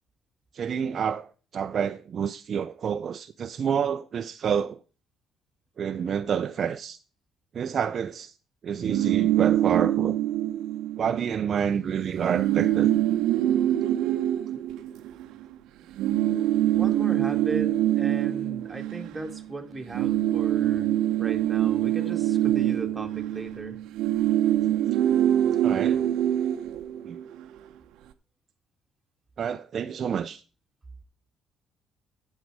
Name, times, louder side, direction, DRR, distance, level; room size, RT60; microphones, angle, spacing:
voice 1, 0.5-4.8 5.8-7.0 7.5-8.3 8.6-10.2 11.0-12.9 25.6-26.0 27.0-27.2 29.4-30.4, right 7 dB, 50° right, 0.5 m, -28 dB
sound 1, 8.7-11.3 11.6-11.8 12.0-15.4 16.0-19.5 19.8-27.4, right 12 dB, 80° right, 0.8 m, -24 dB
voice 2, 16.7-20.9 21.2-23.8, right 2 dB, 15° right, 1.9 m, -37 dB
12.0 x 7.4 x 4.8 m
cardioid pair, 105°, 0 cm